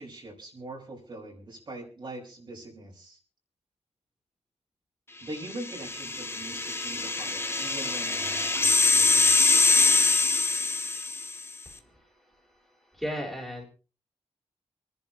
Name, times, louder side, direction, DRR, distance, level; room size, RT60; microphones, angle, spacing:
voice 1, 0.0-3.2 5.2-9.6, right 2 dB, 45° right, -1 dB, 5.7 m, -42 dB
sound 1, 5.5-11.4, left 3 dB, 20° left, 1.1 m, -24 dB
voice 2, 11.7-12.4 12.9-13.6, equal, ahead, -2 dB, 3.7 m, -36 dB
27.5 x 11.0 x 3.1 m, 0.37 s
wide cardioid pair, 170°, 11 cm